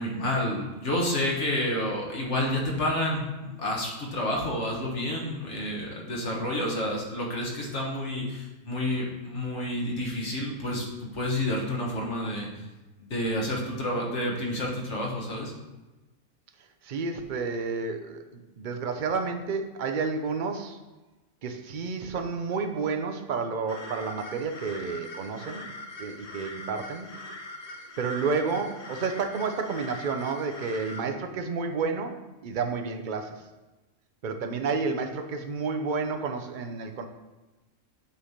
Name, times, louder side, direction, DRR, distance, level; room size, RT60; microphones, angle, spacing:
voice 1, 0.0-12.5 13.0-15.5, left 1 dB, 60° left, -1 dB, 1.7 m, -29 dB
voice 2, 16.8-20.8 21.4-25.7 26.0-27.1 28.0-33.5 34.2-37.1, right 4 dB, 45° right, 6 dB, 0.7 m, -30 dB
sound 1, 23.7-31.0, left 2 dB, 35° left, 0.7 m, -42 dB
8.4 x 3.4 x 5.7 m, 1.1 s
omnidirectional pair, 1.4 m